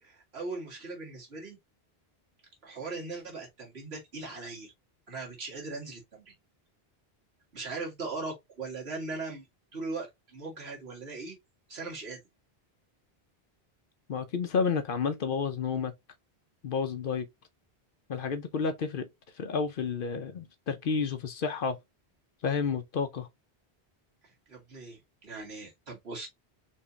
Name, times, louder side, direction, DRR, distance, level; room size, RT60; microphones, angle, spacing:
voice 1, 0.0-1.6 2.6-4.7 5.1-6.3 7.5-9.5 9.7-11.4 11.7-12.2 24.5-26.3, right 3 dB, 75° right, 2.1 m, -39 dB
voice 2, 14.1-15.9 16.6-17.3 18.1-19.1 19.4-21.8 22.4-23.3, left 5 dB, 60° left, 0.8 m, -30 dB
4.5 x 3.3 x 2.8 m
omnidirectional pair, 1.1 m